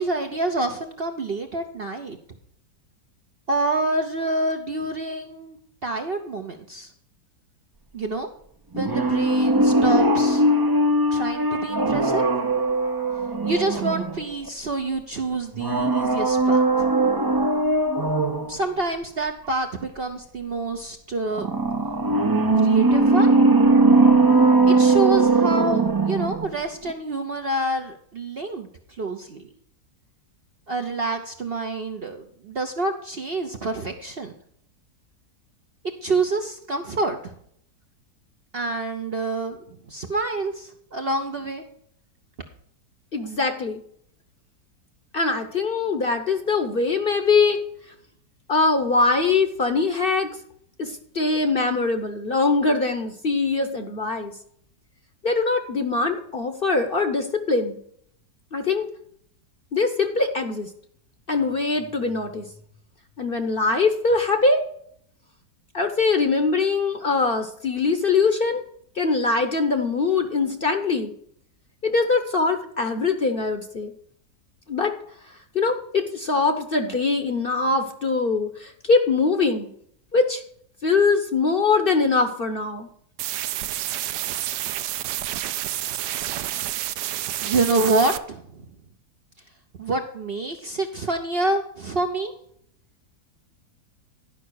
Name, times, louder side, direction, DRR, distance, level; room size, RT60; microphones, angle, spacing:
voice 1, 0.0-2.2 3.5-5.6 5.8-6.9 7.9-8.3 8.7-10.4 11.1-12.2 13.4-16.6 18.5-21.5 22.6-23.3 23.6-23.7 24.7-28.7 29.0-29.5 30.7-34.3 36.0-37.3 38.5-39.6 39.9-41.6 87.4-88.6 89.8-92.3, right 2 dB, 45° right, 4 dB, 0.8 m, -27 dB
sound 1, 8.7-14.5 15.5-18.6 21.3-26.5 26.8-26.9, right 2 dB, 25° right, 0.5 m, -19 dB
voice 2, 43.1-43.8 45.1-47.6 48.5-50.3 50.8-54.3 55.2-57.8 58.5-58.9 59.7-60.7 61.3-62.4 63.2-64.6 65.7-68.6 69.0-71.1 71.8-73.9 74.7-74.9 75.5-79.7 80.1-80.4 80.8-82.9, left 4 dB, 40° left, 7 dB, 1.0 m, -22 dB
sound 2, 83.2-88.2, right 13 dB, 85° right, 1.2 m, -29 dB
11.5 x 5.7 x 6.3 m, 0.65 s
omnidirectional pair, 1.8 m